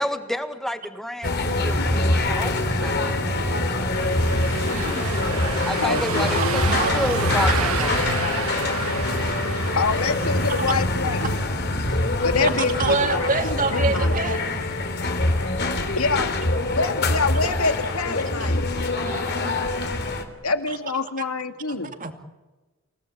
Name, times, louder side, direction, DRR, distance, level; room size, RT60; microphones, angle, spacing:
voice 1, 0.0-3.2 5.6-8.0 11.9-12.0, equal, ahead, 1.7 m, -30 dB
sound 1, 1.2-20.2, left 2 dB, 50° left, 3.4 m, -24 dB
Car passing by / Engine, 3.9-10.6, right 4 dB, 80° right, 1.7 m, -29 dB
voice 2, 4.7-5.0 6.4-7.1 10.5-10.8 12.4-14.6 18.4-19.7 21.7-22.1, right 4 dB, 40° right, 2.5 m, -28 dB
voice 3, 5.8-6.8 9.8-11.3 12.2-14.2 16.0-16.3 16.7-18.7 20.4-21.9, left 4 dB, 85° left, 2.2 m, -26 dB
28.5 x 18.0 x 8.6 m
head